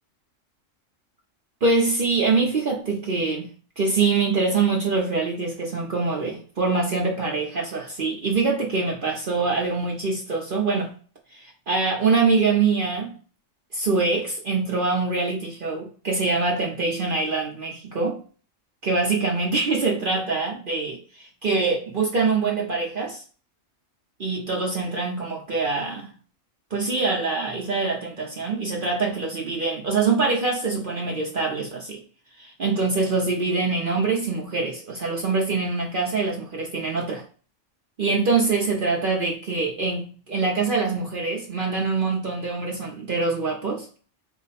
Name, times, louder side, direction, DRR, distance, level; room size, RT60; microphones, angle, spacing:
voice 1, 1.6-3.5 3.8-10.9 11.3-13.2 13.7-18.2 18.8-23.2 24.2-26.1 26.7-32.0 32.4-37.2 38.0-43.9, right 4 dB, 45° right, -2 dB, 0.9 m, -24 dB
4.5 x 2.2 x 4.1 m, 0.39 s
omnidirectional pair, 1.3 m